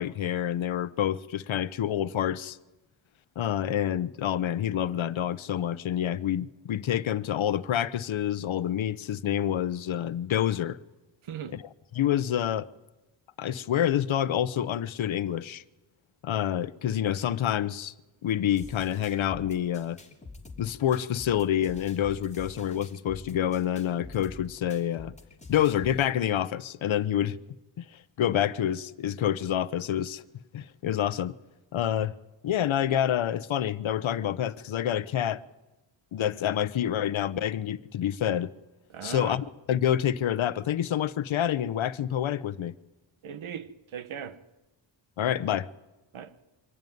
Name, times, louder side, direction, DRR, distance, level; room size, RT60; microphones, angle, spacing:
voice 1, 0.0-2.6 3.4-10.8 11.5-12.7 13.4-15.6 16.2-17.9 18.2-20.0 20.6-25.1 25.5-27.4 27.8-27.9 28.2-30.2 30.5-31.3 31.7-32.1 32.4-35.4 36.1-38.5 39.0-42.7 45.2-45.7, left 10 dB, 80° left, 0.9 m, -27 dB
voice 2, 11.3-11.6 38.9-39.4 43.2-44.4 46.1-46.3, right 8 dB, 85° right, 1.4 m, -38 dB
sound 1, 18.6-26.1, left 3 dB, 15° left, 3.1 m, -47 dB
24.5 x 16.0 x 9.4 m
wide cardioid pair, 135°, 47 cm